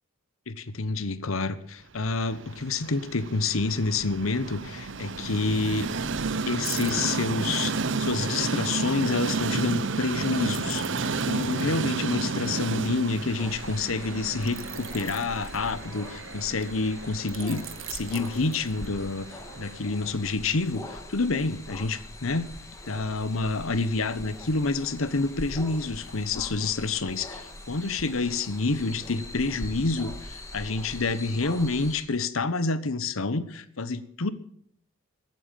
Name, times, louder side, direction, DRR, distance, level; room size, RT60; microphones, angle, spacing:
voice 1, 0.5-5.9 6.5-22.5 22.9-34.3, left 3 dB, 90° left, 14 dB, 1.1 m, -28 dB
Train, 2.0-20.1, right 4 dB, 65° right, 0.8 m, -32 dB
sound 1, 6.6-8.2 10.5-13.2 14.4-16.3 17.3-19.1 19.6-19.8, right 12 dB, 80° right, 1.4 m, -43 dB
sound 2, 13.4-32.0, left 1 dB, 15° left, 2.1 m, -42 dB
15.0 x 9.1 x 9.0 m, 0.66 s
head